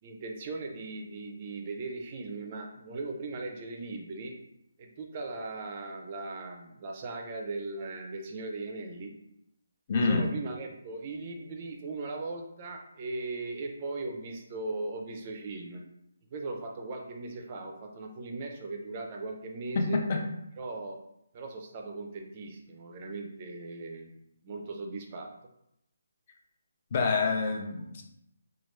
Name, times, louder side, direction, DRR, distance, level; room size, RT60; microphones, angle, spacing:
voice 1, 0.0-4.3 4.8-9.1 9.9-15.8 16.3-20.0 20.6-21.0 21.3-24.1 24.4-25.3, right 3 dB, 25° right, 2 dB, 0.4 m, -38 dB
voice 2, 9.9-10.3 19.8-20.2 26.9-28.0, left 4 dB, 30° left, 2 dB, 0.5 m, -27 dB
3.1 x 2.3 x 3.1 m, 0.79 s
hypercardioid pair, 170°, 0 cm